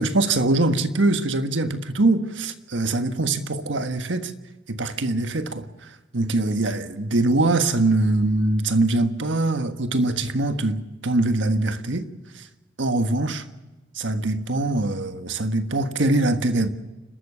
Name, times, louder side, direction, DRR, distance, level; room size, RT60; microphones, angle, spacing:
voice 1, 0.0-4.3 4.7-5.6 6.1-12.1 12.3-12.5 12.8-13.4 13.9-16.7, right 2 dB, 85° right, 1.5 m, -23 dB
30.0 x 13.5 x 6.8 m
head